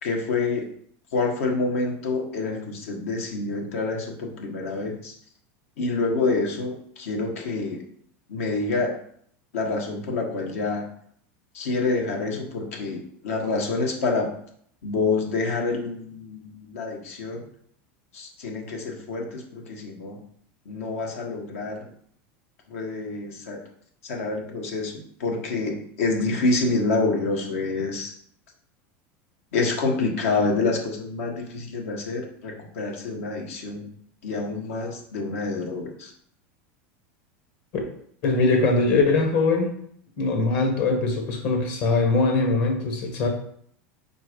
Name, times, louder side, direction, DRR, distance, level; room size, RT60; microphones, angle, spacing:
voice 1, 0.0-0.7 1.1-5.1 5.8-7.8 8.3-8.9 9.5-10.9 11.5-14.3 14.8-17.5 18.1-20.2 20.6-21.9 22.7-23.6 24.0-28.1 29.5-33.9 34.2-36.1, left 3 dB, 85° left, 1 dB, 1.5 m, -27 dB
voice 2, 38.2-39.7 40.2-43.3, left 3 dB, 60° left, 2 dB, 1.8 m, -22 dB
4.6 x 4.2 x 5.1 m, 0.65 s
supercardioid pair, 125°, 7 cm